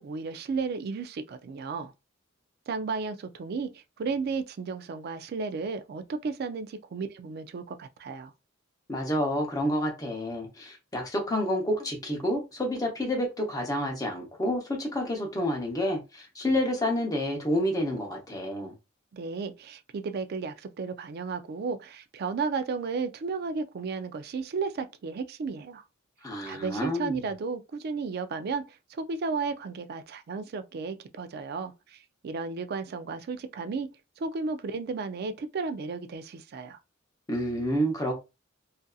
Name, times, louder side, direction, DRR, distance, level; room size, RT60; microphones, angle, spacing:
voice 1, 0.0-1.9 2.7-8.3 19.1-25.8 26.4-33.9 34.2-36.8, right 4 dB, 50° right, 0.3 m, -34 dB
voice 2, 8.9-18.7 26.2-27.2 37.3-38.1, equal, 20° left, 0.8 m, -29 dB
2.6 x 2.4 x 2.3 m
head